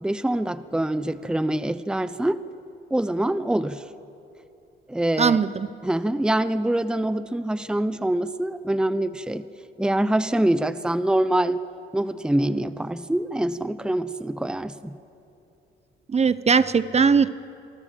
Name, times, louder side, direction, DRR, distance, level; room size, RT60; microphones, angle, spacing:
voice 1, 0.0-2.4 2.9-3.8 4.9-5.4 5.8-9.4 9.8-11.6 11.9-15.0, right 1 dB, 5° right, 14 dB, 0.8 m, -25 dB
voice 2, 5.2-5.7 16.1-17.3, right 5 dB, 35° right, 14 dB, 0.8 m, -19 dB
28.0 x 24.0 x 7.6 m, 2.8 s
cardioid pair, 90°, 20 cm